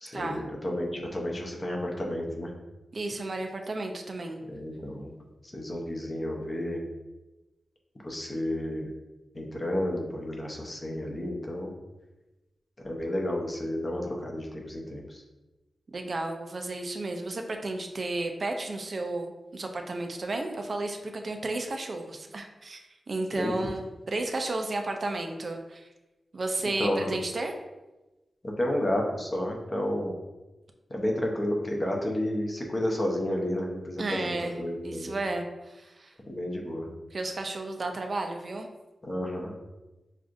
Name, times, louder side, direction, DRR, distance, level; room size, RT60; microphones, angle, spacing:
voice 1, 0.0-2.5 4.5-5.1 5.5-6.8 8.0-8.9 9.3-11.7 12.8-15.2 23.4-23.6 26.8-27.1 28.4-30.1 30.9-35.2 36.3-36.9 39.0-39.5, left 1 dB, 30° left, 0 dB, 0.7 m, -31 dB
voice 2, 2.9-4.4 15.9-25.8 26.3-27.5 34.0-36.1 37.1-38.7, right 2 dB, 50° right, 4 dB, 0.4 m, -33 dB
6.1 x 2.4 x 2.5 m, 1.1 s
wide cardioid pair, 115°, 0 cm